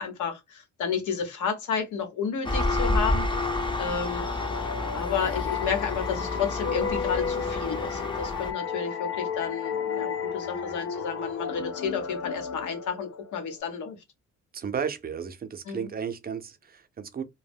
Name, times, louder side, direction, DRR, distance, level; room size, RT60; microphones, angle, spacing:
voice 1, 0.0-3.3 3.8-4.3 4.9-14.0 15.7-15.9, left 6 dB, 75° left, 1.0 m, -31 dB
Engine, 2.4-8.5, left 2 dB, 15° left, 0.5 m, -29 dB
sound 1, 4.2-13.6, left 6 dB, 55° left, 0.6 m, -33 dB
voice 2, 14.5-17.2, right 7 dB, 30° right, 0.5 m, -33 dB
2.1 x 2.0 x 3.4 m
cardioid pair, 90°, 30 cm